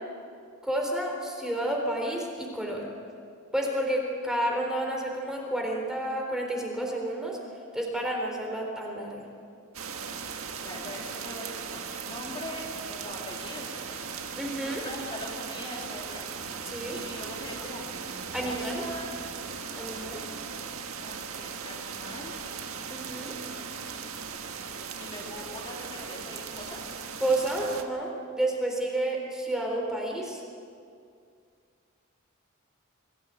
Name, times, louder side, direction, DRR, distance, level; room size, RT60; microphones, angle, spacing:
voice 1, 0.6-2.9 3.5-7.4 7.7-9.3 14.4-14.8 16.7-17.0 18.3-18.8 19.8-20.2 22.9-23.6 27.2-30.4, right 1 dB, 5° right, 0 dB, 3.9 m, -30 dB
sound 1, 9.7-27.8, right 6 dB, 75° right, 1.7 m, -38 dB
voice 2, 10.6-12.6 12.9-14.0 14.6-16.2 16.9-17.9 18.4-19.1 21.0-22.3 25.0-26.8, left 1 dB, 25° left, -3 dB, 3.2 m, -42 dB
24.5 x 17.0 x 9.0 m, 2.3 s
head